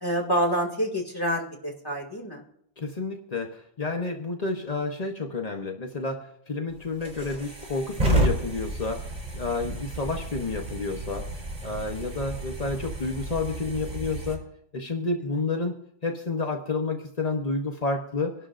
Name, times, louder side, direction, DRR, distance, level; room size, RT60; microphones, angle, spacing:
voice 1, 0.0-2.4, right 1 dB, 10° left, 0 dB, 2.1 m, -27 dB
voice 2, 2.8-11.3 11.6-14.4 14.7-18.3, left 3 dB, 40° left, 3 dB, 0.6 m, -30 dB
gas stove burner light burn and switch off close, 6.7-14.4, right 1 dB, 20° right, 6.7 m, -31 dB
25.5 x 11.5 x 2.5 m, 0.72 s
omnidirectional pair, 2.0 m